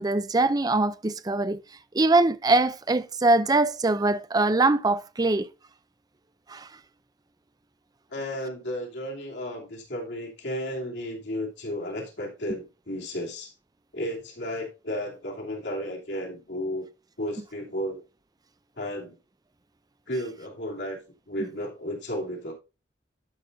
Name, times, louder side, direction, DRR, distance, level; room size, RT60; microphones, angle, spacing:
voice 1, 0.0-1.6 1.9-5.5 6.5-6.7, right 2 dB, 20° right, 0.5 m, -22 dB
voice 2, 8.1-13.5 13.9-16.9 17.2-18.0 18.8-19.2 20.1-21.0 21.3-22.5, equal, 90° left, 2.8 m, -33 dB
11.0 x 5.3 x 3.9 m
head